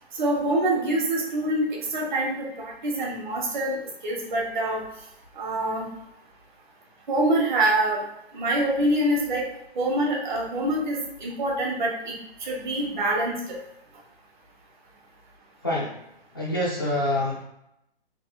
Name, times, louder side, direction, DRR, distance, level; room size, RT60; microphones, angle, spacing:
voice 1, 0.1-3.8 4.0-4.8 5.4-5.9 7.1-8.0 8.3-9.5 9.7-12.1 12.4-13.4, right 1 dB, 50° right, -2 dB, 1.4 m, -25 dB
voice 2, 15.6-17.4, left 1 dB, 25° left, -6 dB, 0.3 m, -27 dB
3.5 x 2.6 x 3.8 m, 0.83 s
hypercardioid pair, 165°, 31 cm